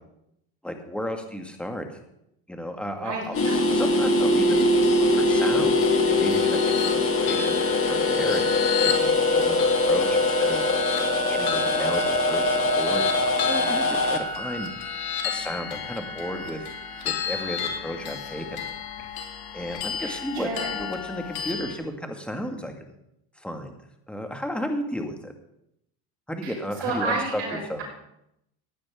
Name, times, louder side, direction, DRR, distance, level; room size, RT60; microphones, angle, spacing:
voice 1, 0.6-1.9 2.5-10.6 11.3-14.7 15.2-16.7 17.0-18.7 19.5-22.7 23.4-23.7 24.1-25.3 26.3-27.4 27.7-27.8, equal, ahead, 4 dB, 1.8 m, -33 dB
voice 2, 2.9-4.1 13.6-13.8 20.0-20.7 26.4-27.8, right 3 dB, 60° right, -2 dB, 5.7 m, -32 dB
sound 1, 3.3-21.7, left 6 dB, 55° left, 2.5 m, -32 dB
sound 2, 3.3-14.2, left 2 dB, 30° left, 1.8 m, -22 dB
16.0 x 10.5 x 3.7 m, 0.80 s
supercardioid pair, 105°, 44 cm